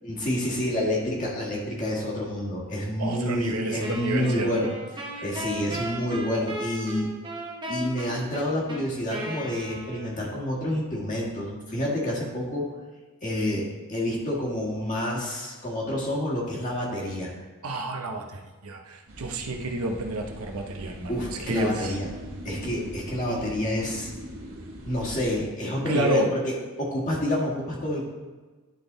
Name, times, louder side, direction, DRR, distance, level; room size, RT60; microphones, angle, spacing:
voice 1, 0.0-4.7 5.2-7.1 7.7-12.7 13.2-17.3 21.1-22.1 22.4-24.1 24.8-28.0, left 1 dB, 35° left, -4 dB, 1.7 m, -28 dB
voice 2, 3.0-4.7 5.2-5.3 17.6-21.1 21.4-22.0 25.9-26.3, right 2 dB, 90° right, 3 dB, 0.8 m, -30 dB
Wind instrument woodwind instrument, 3.8-10.4, right 1 dB, 20° right, 1.0 m, -36 dB
sound 1, 19.1-25.4, equal, 65° right, 1.3 m, -41 dB
10.5 x 4.0 x 3.9 m, 1.3 s
head